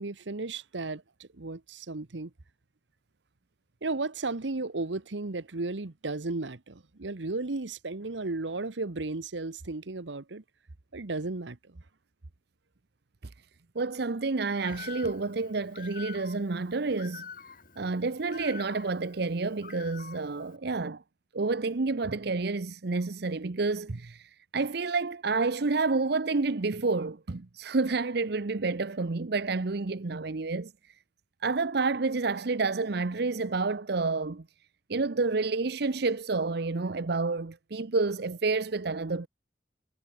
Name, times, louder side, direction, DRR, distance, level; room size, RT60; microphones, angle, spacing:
voice 1, 0.0-2.3 3.8-10.4 10.9-11.8, right 3 dB, 80° right, 1.1 m, -34 dB
voice 2, 13.7-17.3 17.8-21.0 21.3-30.7 31.4-34.4 34.9-39.3, right 3 dB, 60° right, 0.8 m, -29 dB
Bird, 14.6-20.6, left 6 dB, 50° left, 5.7 m, -47 dB
head